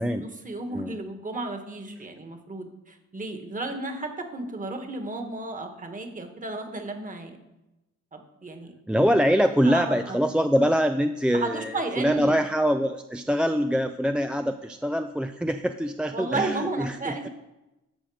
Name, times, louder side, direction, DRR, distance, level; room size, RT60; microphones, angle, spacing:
voice 1, 0.0-7.4 8.1-8.7 9.6-10.2 11.3-12.4 16.1-17.3, right 2 dB, 25° right, 5 dB, 1.6 m, -33 dB
voice 2, 8.9-17.3, equal, 5° right, 7 dB, 0.3 m, -24 dB
13.5 x 5.3 x 5.0 m, 0.96 s
cardioid pair, 90°, 30 cm